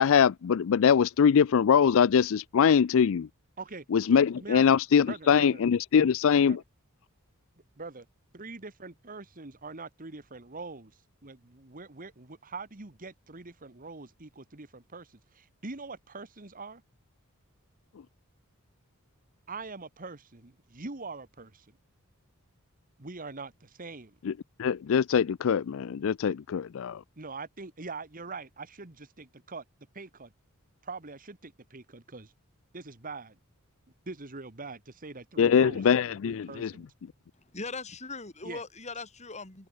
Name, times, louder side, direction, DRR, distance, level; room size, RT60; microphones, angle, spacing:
voice 1, 0.0-3.3 3.9-6.6 24.2-24.3 24.6-27.0 35.4-36.7, left 7 dB, 65° left, 0.4 m, -23 dB
voice 2, 4.1-4.6 5.0-5.6 5.9-6.1 6.5-6.6 7.8-8.1 8.3-10.9 11.2-16.8 19.5-21.6 23.0-24.2 27.2-29.6 29.9-30.3 30.8-32.3 32.7-33.4 34.1-36.9 38.4-38.6, right 3 dB, 40° right, 1.6 m, -43 dB
voice 3, 37.5-39.7, left 3 dB, 30° left, 4.1 m, -39 dB
head